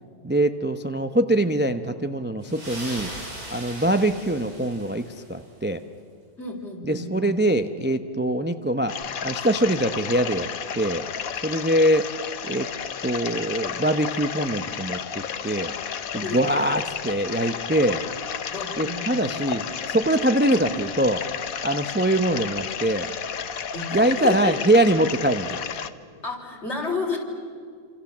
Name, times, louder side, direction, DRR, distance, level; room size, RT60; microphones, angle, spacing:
voice 1, 0.2-3.1 3.5-5.8 6.8-10.5 10.8-11.0 11.4-12.1 12.4-12.7 13.0-15.7 16.1-18.0 18.8-21.2 21.6-23.1 23.9-25.6, right 1 dB, 15° right, 8 dB, 0.4 m, -23 dB
sound 1, 2.4-5.4, right 1 dB, 65° right, 5.5 m, -39 dB
voice 2, 6.4-7.3 16.2-16.4 18.5-19.3 20.5-20.6 23.7-24.5 26.2-27.2, left 3 dB, 45° left, 1 dB, 4.5 m, -31 dB
sound 2, 8.9-25.9, left 7 dB, 65° left, 1.4 m, -32 dB
28.0 x 26.5 x 7.3 m, 2.1 s
omnidirectional pair, 1.7 m